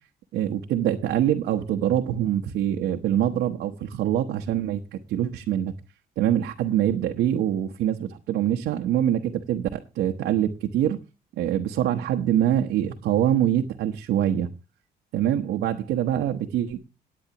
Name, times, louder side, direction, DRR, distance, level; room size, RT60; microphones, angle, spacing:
voice 1, 0.3-5.7 6.2-11.0 11.4-14.5 15.1-16.8, right 11 dB, 85° right, 1.1 m, -24 dB
17.5 x 9.7 x 2.9 m
cardioid pair, 165°, 17 cm